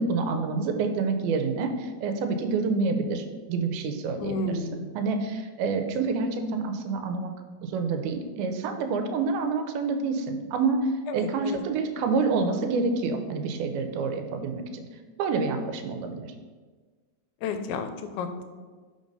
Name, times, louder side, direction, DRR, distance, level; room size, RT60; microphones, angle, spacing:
voice 1, 0.0-4.4 5.0-7.3 7.6-14.9 15.2-16.3, right 4 dB, 90° right, 6 dB, 2.5 m, -27 dB
voice 2, 4.2-4.9 11.1-11.6 17.4-18.4, left 3 dB, 85° left, 8 dB, 2.5 m, -32 dB
5.7 x 5.2 x 5.3 m, 1.4 s
omnidirectional pair, 4.3 m